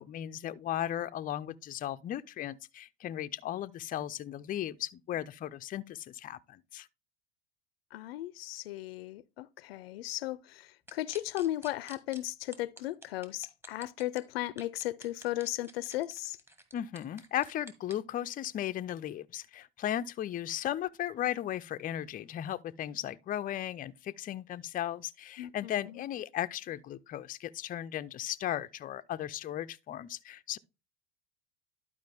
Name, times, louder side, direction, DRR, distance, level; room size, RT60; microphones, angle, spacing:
voice 1, 0.0-6.9 16.7-30.6, left 12 dB, 30° left, 0.5 m, -36 dB
voice 2, 7.9-16.4 25.4-26.0, left 15 dB, 75° left, 0.5 m, -36 dB
sound 1, 10.9-12.2 12.5-14.2 14.6-17.9, right 1 dB, 10° right, 1.6 m, -50 dB
11.5 x 4.9 x 3.4 m
hypercardioid pair, 85°, 30 cm